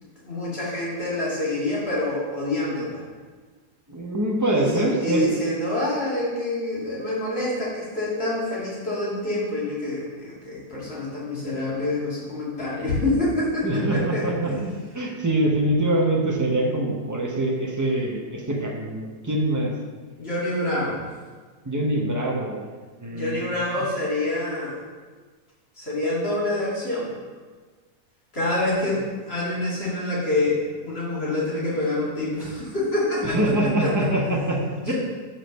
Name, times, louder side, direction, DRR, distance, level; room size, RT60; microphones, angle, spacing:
voice 1, 0.2-3.0 4.5-14.7 20.2-21.0 23.0-24.8 25.8-27.1 28.3-29.0 29.3-34.1 34.8-34.9, left 1 dB, 35° left, -8 dB, 2.7 m, -27 dB
voice 2, 3.9-5.4 13.6-14.5 14.9-19.7 21.6-22.7 23.0-23.5 33.2-34.6 34.9-35.0, right 1 dB, 15° right, -2 dB, 0.7 m, -24 dB
5.9 x 5.0 x 6.5 m, 1.4 s
omnidirectional pair, 1.9 m